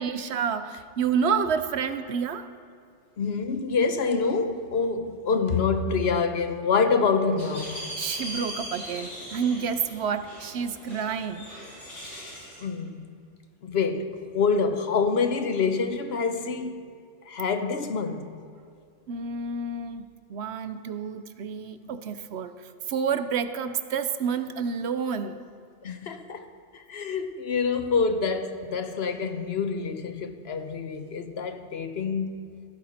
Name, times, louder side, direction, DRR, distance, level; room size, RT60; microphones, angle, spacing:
voice 1, 0.0-2.5 8.0-11.5 19.1-25.4, right 6 dB, 70° right, 0.9 m, -29 dB
voice 2, 3.2-7.9 12.6-13.1 13.6-16.8 17.2-18.5 21.8-21.9 25.8-26.5 26.7-32.4, left 5 dB, 65° left, 1.0 m, -26 dB
sound 1, 7.4-12.6, equal, 85° left, 4.4 m, -39 dB
16.0 x 12.5 x 4.3 m
omnidirectional pair, 1.2 m